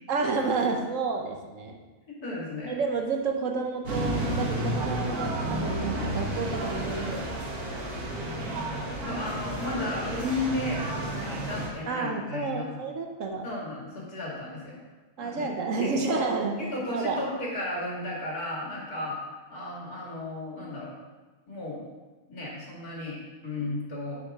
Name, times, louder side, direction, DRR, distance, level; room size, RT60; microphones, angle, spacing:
voice 1, 0.1-1.8 2.7-7.3 11.9-13.5 15.2-17.3, right 4 dB, 60° right, 3 dB, 1.2 m, -30 dB
voice 2, 2.1-2.7 9.0-12.8 13.4-14.8 15.2-15.5 15.8-16.2 16.6-19.2 19.5-20.9 21.5-21.9 22.3-24.2, left 2 dB, 80° left, -5 dB, 2.7 m, -34 dB
sound 1, 3.9-11.7, right 1 dB, 80° right, 2.0 m, -31 dB
9.8 x 6.3 x 3.6 m, 1.2 s
omnidirectional pair, 1.6 m